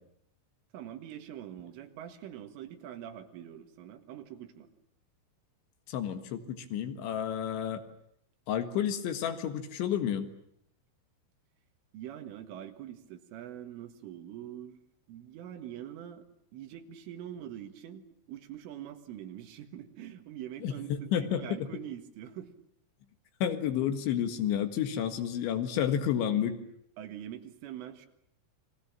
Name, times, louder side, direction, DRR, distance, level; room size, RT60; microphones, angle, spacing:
voice 1, 0.7-4.7 11.9-14.8 15.1-16.3 16.5-22.5 27.0-28.1, right 11 dB, 80° right, 7 dB, 4.3 m, -44 dB
voice 2, 5.9-7.8 8.5-10.3 20.6-20.7 21.1-21.4 23.4-26.6, left 9 dB, 70° left, 8 dB, 3.9 m, -30 dB
30.0 x 22.5 x 7.5 m, 0.72 s
omnidirectional pair, 5.7 m